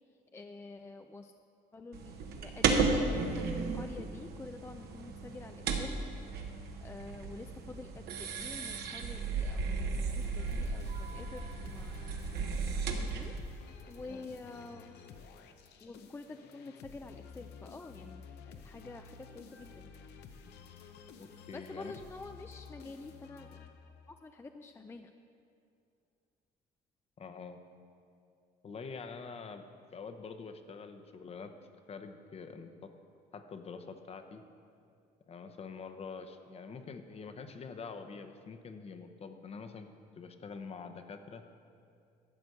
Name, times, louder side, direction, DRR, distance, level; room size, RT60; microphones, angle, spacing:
voice 1, 0.3-1.3 1.7-6.0 6.8-12.1 12.5-13.3 13.9-15.0 15.8-19.9 21.5-23.7 24.1-25.1, left 3 dB, 15° left, 6 dB, 0.4 m, -48 dB
sound 1, 1.9-13.4, right 4 dB, 70° right, 1.1 m, -34 dB
sound 2, 9.9-24.2, left 6 dB, 80° left, 0.8 m, -52 dB
voice 2, 21.2-22.0 27.2-27.6 28.6-31.6 31.9-32.9 33.3-34.4 35.3-41.4, left 5 dB, 35° left, 8 dB, 0.8 m, -46 dB
12.0 x 5.1 x 8.1 m, 2.5 s
cardioid pair, 110°, 17 cm